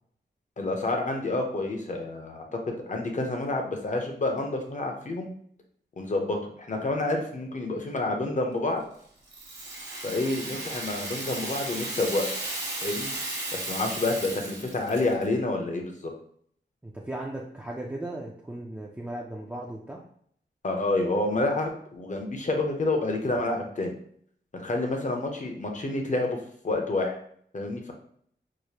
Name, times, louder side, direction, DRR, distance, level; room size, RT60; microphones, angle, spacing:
voice 1, 0.6-5.3 6.0-8.8 10.0-12.3 12.8-13.1 13.5-16.1 20.6-24.0 24.5-26.4 26.6-27.2 27.5-27.9, left 2 dB, 40° left, 2 dB, 0.7 m, -28 dB
Rattle (instrument), 9.3-15.3, right 2 dB, 65° right, 1.2 m, -35 dB
voice 2, 16.8-20.0, right 1 dB, 10° right, -2 dB, 0.4 m, -37 dB
4.8 x 2.1 x 2.9 m, 0.63 s
wide cardioid pair, 120°, 19 cm